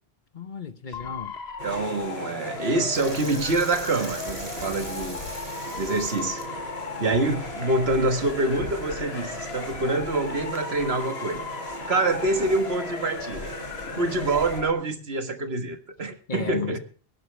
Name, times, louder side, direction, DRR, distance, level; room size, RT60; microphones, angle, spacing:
voice 1, 0.3-1.3 13.9-14.1 16.3-16.8, left 5 dB, 50° left, 1.1 m, -34 dB
Motor vehicle (road) / Siren, 0.9-14.7, left 6 dB, 80° left, 1.3 m, -37 dB
sound 1, 1.6-14.6, right 1 dB, 50° right, 5.2 m, -38 dB
voice 2, 1.6-5.2 5.7-6.4 7.0-11.5 11.9-13.5 13.9-16.8, right 2 dB, 75° right, 1.7 m, -26 dB
sound 2, 2.9-8.1, right 1 dB, 25° right, 2.7 m, -42 dB
21.0 x 11.0 x 3.3 m
omnidirectional pair, 1.0 m